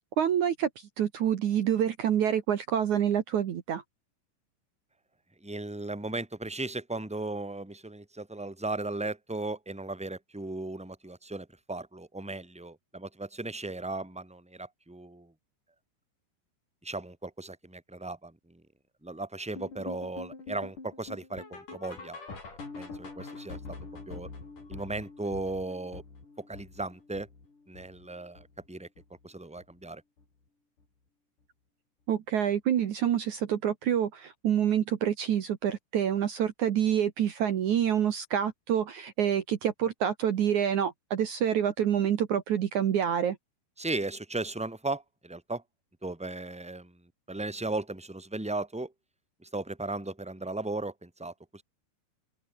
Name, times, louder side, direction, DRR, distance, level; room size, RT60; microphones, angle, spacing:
voice 1, 0.2-3.8 32.1-43.4, right 9 dB, 70° right, 1.8 m, -27 dB
voice 2, 5.4-15.3 16.8-18.6 19.0-22.2 22.7-23.6 24.1-24.3 24.7-26.0 26.4-27.3 27.7-28.9 29.2-30.0 43.8-45.6 46.0-48.9 49.4-51.6, right 2 dB, ahead, 2.3 m, -36 dB
sound 1, 19.5-28.7 29.0-29.3 29.6-29.7 30.2-30.3 30.8-30.9, left 4 dB, 40° left, 8.6 m, -45 dB
open air
omnidirectional pair, 5.5 m